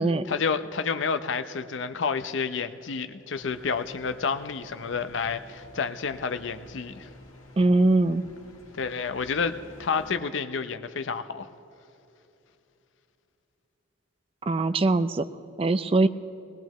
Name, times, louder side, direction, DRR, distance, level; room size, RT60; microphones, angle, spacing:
voice 1, 0.3-7.1 8.7-11.5, left 5 dB, 70° left, 9 dB, 0.6 m, -30 dB
sound 1, 3.3-10.1, left 1 dB, 85° left, 1.9 m, -50 dB
voice 2, 7.6-8.2 14.5-15.3 15.6-16.1, right 2 dB, 30° right, 12 dB, 0.4 m, -21 dB
20.0 x 19.5 x 3.1 m, 2.9 s
head